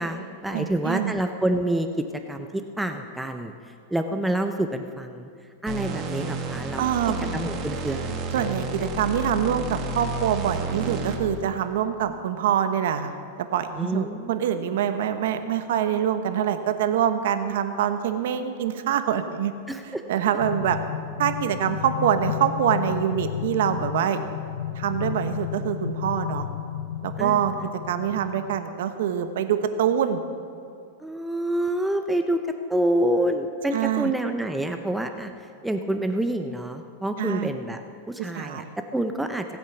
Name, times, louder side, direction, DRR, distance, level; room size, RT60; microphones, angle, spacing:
voice 1, 0.0-5.3 5.6-6.8 7.3-8.9 13.8-14.8 19.7-20.0 27.2-27.4 31.0-32.4 32.7-35.3 35.6-37.8 38.1-38.6 38.9-39.5, right 1 dB, 5° right, 6 dB, 0.5 m, -27 dB
voice 2, 0.5-1.1 6.8-7.2 8.3-13.1 13.4-19.5 20.1-20.8 21.2-24.2 24.7-26.5 27.0-27.5 27.9-30.2 33.7-34.1 37.2-37.5 38.2-38.7, right 9 dB, 70° right, 9 dB, 1.1 m, -25 dB
sound 1, 5.7-11.4, right 3 dB, 35° right, 1.3 m, -31 dB
sound 2, 20.4-28.6, left 11 dB, 85° left, 0.5 m, -32 dB
18.0 x 8.5 x 6.0 m, 2.5 s
supercardioid pair, 150°, 0 cm